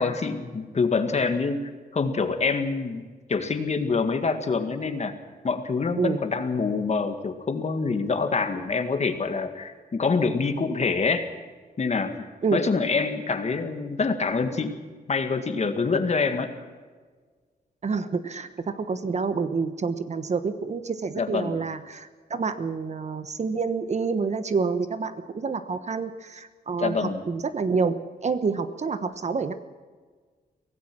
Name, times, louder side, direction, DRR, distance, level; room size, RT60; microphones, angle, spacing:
voice 1, 0.0-1.6 1.9-3.0 3.3-5.1 5.4-11.3 11.8-12.3 12.5-14.8 15.1-16.5 21.1-21.6 26.8-27.2, left 4 dB, 40° left, 7 dB, 1.9 m, -26 dB
voice 2, 17.8-29.5, right 5 dB, 45° right, 11 dB, 1.1 m, -28 dB
24.5 x 17.0 x 6.2 m, 1.5 s
wide cardioid pair, 170°, 17 cm